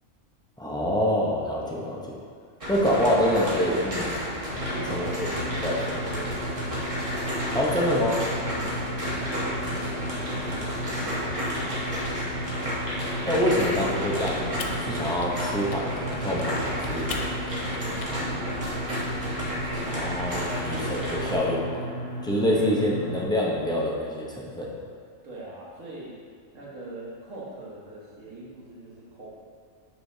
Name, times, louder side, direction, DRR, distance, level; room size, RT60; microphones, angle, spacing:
voice 1, 0.6-2.2 2.7-4.2 4.9-5.3 5.6-5.8 7.5-8.2 13.2-17.2 19.8-21.9 22.2-24.8, equal, 5° left, -5 dB, 0.6 m, -26 dB
voice 2, 1.7-2.1 2.8-3.2 4.7-6.5 8.5-11.9 17.7-18.9 22.4-22.7 25.2-26.2 26.5-29.3, right 2 dB, 85° right, -6 dB, 1.7 m, -41 dB
sound 1, 2.6-21.4, equal, 30° right, 1.2 m, -32 dB
sound 2, 4.5-23.2, equal, 90° left, 1.3 m, -35 dB
Typing, 12.8-14.0 14.3-14.8 15.2-15.9 16.1-18.1, left 5 dB, 70° left, 0.9 m, -40 dB
6.5 x 6.4 x 2.7 m, 2.1 s
omnidirectional pair, 1.3 m